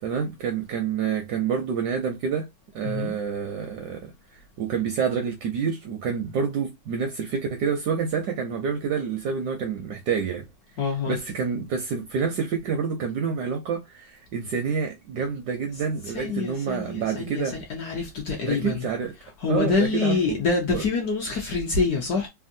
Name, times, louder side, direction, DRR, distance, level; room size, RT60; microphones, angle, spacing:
voice 1, 0.0-2.5 2.7-10.4 11.1-17.6 18.5-19.1 19.5-20.4 20.7-20.8, right 6 dB, 75° right, 0.9 m, -28 dB
voice 2, 10.8-11.2 16.1-18.9 19.4-22.3, left 4 dB, 65° left, 1.0 m, -26 dB
3.4 x 2.2 x 2.6 m
omnidirectional pair, 2.2 m